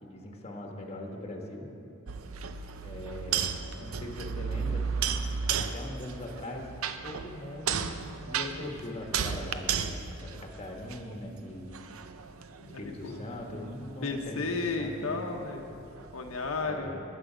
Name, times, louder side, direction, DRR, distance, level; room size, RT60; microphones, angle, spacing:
voice 1, 0.0-1.7 2.8-4.8 5.6-6.7 7.0-11.7 12.8-15.2 16.6-17.0, left 1 dB, 30° left, 1 dB, 1.5 m, -41 dB
sound 1, 2.1-11.3 11.7-16.6, right 6 dB, 80° right, 0.6 m, -34 dB
voice 2, 12.6-13.2 14.0-15.9 16.1-17.0, left 3 dB, 80° left, 2 dB, 1.0 m, -33 dB
19.5 x 8.4 x 5.1 m, 2.8 s
head